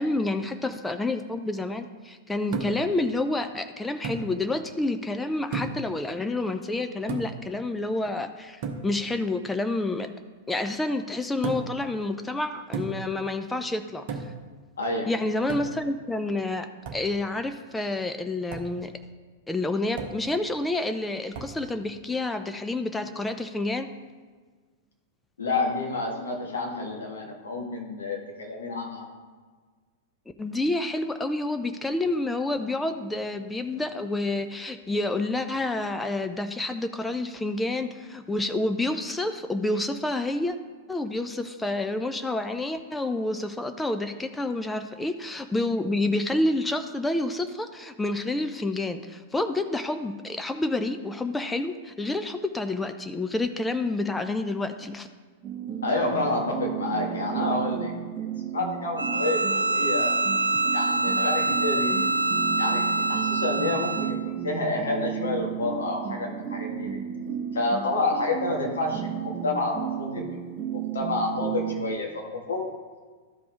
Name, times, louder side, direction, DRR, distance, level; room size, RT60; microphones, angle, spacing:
voice 1, 0.0-10.1 10.5-14.2 15.1-16.7 16.9-18.9 19.5-23.9 30.4-40.6 40.9-55.1, left 2 dB, 10° left, 7 dB, 0.5 m, -29 dB
sound 1, 2.5-3.0 4.0-4.3 5.5-5.9 7.1-7.5 8.6-8.9 11.4-11.8 12.7-13.1 14.1-14.4 15.5-15.9 16.9-17.1 18.5-18.8 20.0-20.3 21.3-21.6, right 5 dB, 50° right, 1.0 m, -33 dB
voice 2, 14.8-15.1 25.4-29.1 55.8-57.9 58.5-60.2 60.7-62.0 62.6-67.0 67.5-70.4 70.9-72.6, left 2 dB, 70° left, 0 dB, 1.8 m, -29 dB
sound 2, 55.4-72.0, right 9 dB, 20° right, 1.0 m, -33 dB
Bowed string instrument, 59.0-64.2, right 2 dB, 75° right, 0.4 m, -25 dB
12.5 x 4.8 x 3.6 m, 1.5 s
figure-of-eight pair, 95°, 0 cm